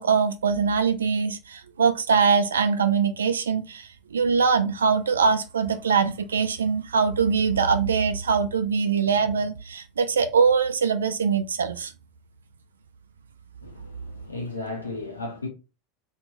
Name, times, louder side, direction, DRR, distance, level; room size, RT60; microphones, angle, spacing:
voice 1, 0.0-11.9, right 5 dB, 75° right, 0.3 m, -23 dB
voice 2, 13.6-15.5, left 2 dB, 85° left, 0.5 m, -35 dB
2.9 x 2.2 x 3.8 m
figure-of-eight pair, 80°, 0 cm